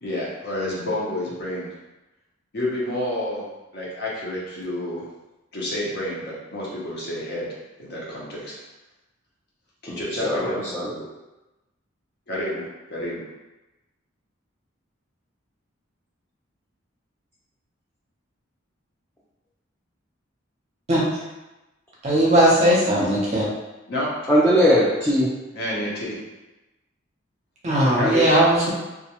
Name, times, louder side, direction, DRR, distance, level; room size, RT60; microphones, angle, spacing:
voice 1, 0.0-1.7 2.5-3.4 3.7-5.0 5.5-7.5 7.8-8.5 9.8-11.0 12.3-13.2 23.9-24.1 25.5-26.2 28.0-28.3, left 1 dB, 50° left, -5 dB, 0.7 m, -29 dB
voice 2, 9.9-10.9 24.3-25.3, equal, 10° left, -9 dB, 0.3 m, -20 dB
voice 3, 22.0-23.5 27.6-28.7, right 1 dB, 35° right, -6 dB, 0.6 m, -18 dB
2.4 x 2.1 x 2.8 m, 1.0 s
head